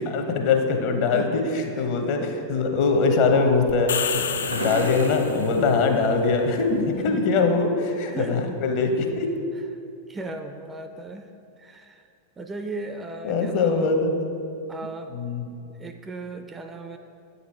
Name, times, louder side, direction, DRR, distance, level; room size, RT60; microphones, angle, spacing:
voice 1, 0.0-1.4 1.8-9.3 13.2-14.2 15.1-15.5, left 4 dB, 45° left, 4 dB, 0.8 m, -22 dB
sound 1, 3.4-7.0, right 1 dB, 75° right, 0.7 m, -35 dB
sound 2, 3.7-5.6, left 8 dB, 65° left, 0.3 m, -30 dB
voice 2, 6.9-7.6 8.1-8.4 10.1-11.3 11.6-12.1 12.4-14.0 14.7-15.1 15.7-17.0, right 2 dB, 15° right, 6 dB, 0.4 m, -36 dB
8.3 x 4.1 x 4.4 m, 2.5 s
figure-of-eight pair, 90°, 0 cm